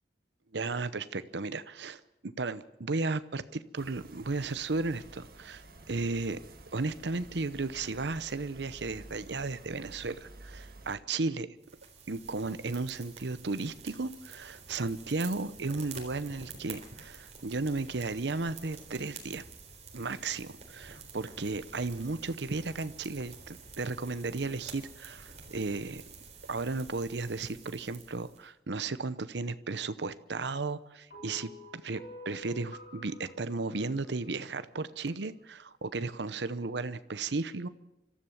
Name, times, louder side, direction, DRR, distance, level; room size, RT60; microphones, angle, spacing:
voice 1, 0.5-6.4 6.7-11.5 12.1-19.4 19.9-26.0 26.5-37.7, right 3 dB, 80° right, 13 dB, 0.8 m, -34 dB
sound 1, 3.7-11.0, right 2 dB, 55° right, 2.2 m, -51 dB
sound 2, 11.6-28.4, right 5 dB, 40° right, 3.9 m, -49 dB
sound 3, 31.1-35.4, left 1 dB, 50° left, 4.3 m, -50 dB
25.5 x 14.0 x 7.3 m, 0.93 s
head